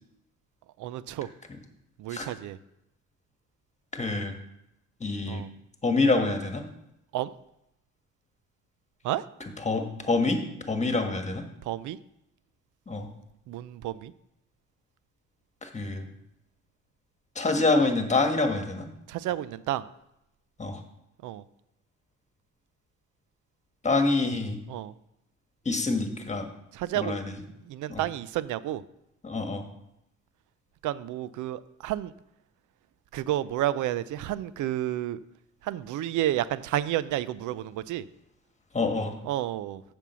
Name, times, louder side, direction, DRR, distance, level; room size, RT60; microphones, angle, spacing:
voice 1, 0.8-1.3 2.0-2.6 5.3-5.5 7.1-7.3 9.0-9.2 11.6-12.0 13.5-14.1 19.1-19.9 21.2-21.4 24.7-24.9 26.7-27.2 27.7-28.8 30.8-32.1 33.1-35.2 35.6-38.1 39.2-39.8, right 13 dB, 80° right, 17 dB, 0.5 m, -31 dB
voice 2, 3.9-4.3 5.0-5.4 5.8-6.6 9.6-10.4 10.7-11.4 12.9-13.1 15.6-16.1 17.3-18.9 20.6-20.8 23.8-24.6 25.6-26.5 26.9-27.4 27.9-28.0 29.2-29.6 38.7-39.1, left 3 dB, 25° left, 5 dB, 1.5 m, -26 dB
7.4 x 5.4 x 6.9 m, 0.83 s
cardioid pair, 90°, 30 cm